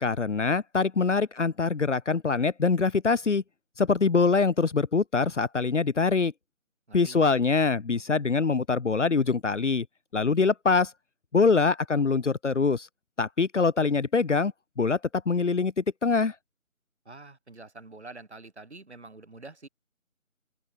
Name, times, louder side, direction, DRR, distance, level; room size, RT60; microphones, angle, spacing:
voice 1, 0.0-3.4 3.8-6.3 6.9-9.9 10.1-10.9 11.3-12.9 13.2-14.5 14.8-15.0 15.3-16.3, left 4 dB, 60° left, 0.6 m, -24 dB
voice 2, 6.9-7.2 17.1-19.7, right 3 dB, 50° right, 5.5 m, -46 dB
open air
figure-of-eight pair, 160°, 41 cm